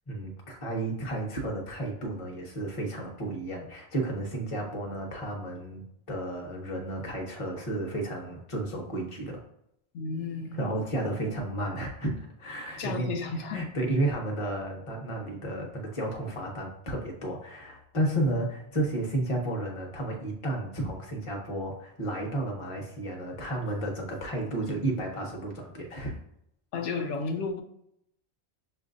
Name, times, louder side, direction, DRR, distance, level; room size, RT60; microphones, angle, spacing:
voice 1, 0.1-9.4 10.5-26.2, right 1 dB, 30° left, 0 dB, 0.8 m, -32 dB
voice 2, 9.9-10.6 12.8-13.6 26.7-27.6, left 4 dB, 85° left, 4 dB, 0.9 m, -32 dB
6.2 x 2.5 x 2.5 m, 0.76 s
omnidirectional pair, 1.2 m